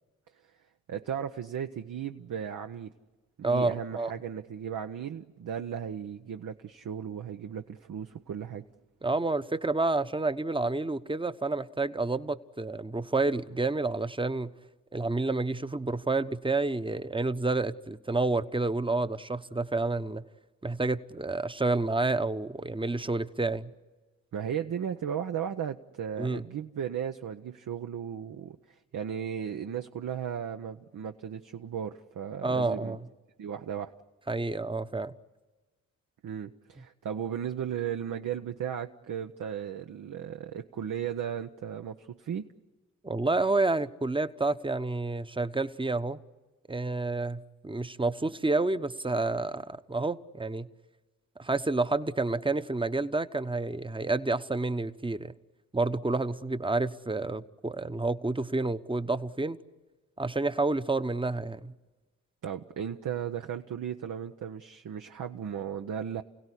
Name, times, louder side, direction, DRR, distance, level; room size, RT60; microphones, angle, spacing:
voice 1, 0.9-2.9 3.4-8.6 24.3-33.0 33.4-33.9 36.2-42.5 62.4-66.2, right 8 dB, 65° right, 0.9 m, -36 dB
voice 2, 3.4-4.1 9.0-14.5 14.9-20.2 20.6-23.7 26.2-26.4 32.4-33.1 34.3-35.1 43.0-46.2 46.7-50.7 51.4-55.3 55.7-59.6 60.2-61.7, right 3 dB, 15° right, 1.0 m, -29 dB
28.5 x 17.0 x 10.0 m
supercardioid pair, 45°, 34 cm